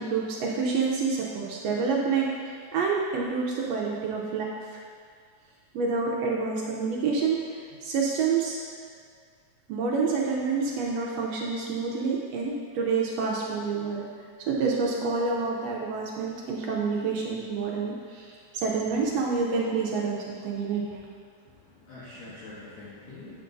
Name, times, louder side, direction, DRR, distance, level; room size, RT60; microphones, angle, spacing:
voice 1, 0.0-4.8 5.7-7.5 7.8-8.6 9.7-14.1 14.4-21.0, right 4 dB, 75° right, -3 dB, 1.6 m, -28 dB
voice 2, 21.4-23.4, left 2 dB, 70° left, -9 dB, 2.2 m, -45 dB
9.3 x 5.7 x 2.6 m, 2.1 s
omnidirectional pair, 3.5 m